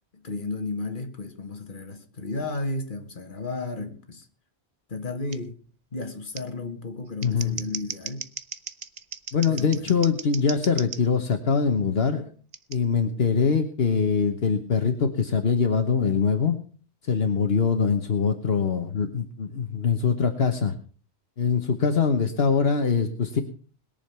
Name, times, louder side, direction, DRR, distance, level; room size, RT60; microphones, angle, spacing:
voice 1, 0.1-4.3 4.9-5.6 5.9-8.3 9.5-10.1, left 3 dB, 50° left, 1.8 m, -33 dB
Scissors, 5.3-5.4 6.3-6.4 7.1-11.0 12.5-12.8, right 6 dB, 45° right, 0.8 m, -37 dB
voice 2, 7.2-7.6 9.3-12.3 12.7-16.6 17.0-20.7 21.4-23.4, left 5 dB, 70° left, 1.4 m, -23 dB
21.0 x 7.1 x 5.7 m
omnidirectional pair, 1.1 m